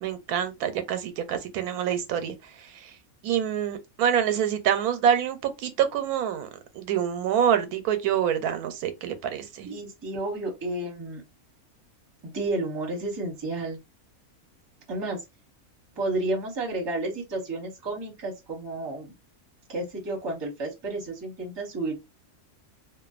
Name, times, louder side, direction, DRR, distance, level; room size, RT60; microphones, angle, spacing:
voice 1, 0.0-3.0 3.2-6.5 6.7-9.7, right 9 dB, 90° right, 1.1 m, -26 dB
voice 2, 9.6-11.2 12.2-13.8 14.9-15.2 16.0-19.1 19.7-22.0, right 2 dB, 25° right, 0.7 m, -31 dB
2.5 x 2.2 x 2.3 m
omnidirectional pair, 1.5 m